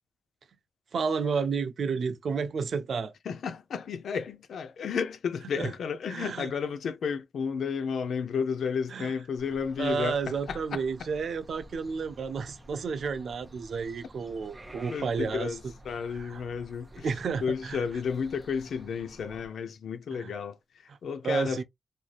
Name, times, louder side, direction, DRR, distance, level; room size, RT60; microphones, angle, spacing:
voice 1, 0.9-3.1 5.6-5.7 6.1-6.5 8.9-9.1 9.8-15.5 16.2-16.4 17.0-17.8 20.2-20.3 21.2-21.6, right 5 dB, 70° right, 0.5 m, -31 dB
voice 2, 3.2-11.1 14.9-17.1 17.4-21.6, left 6 dB, 90° left, 0.4 m, -32 dB
sound 1, 9.4-19.5, right 1 dB, 20° right, 0.8 m, -51 dB
3.2 x 2.6 x 2.4 m
wide cardioid pair, 95°, 0 cm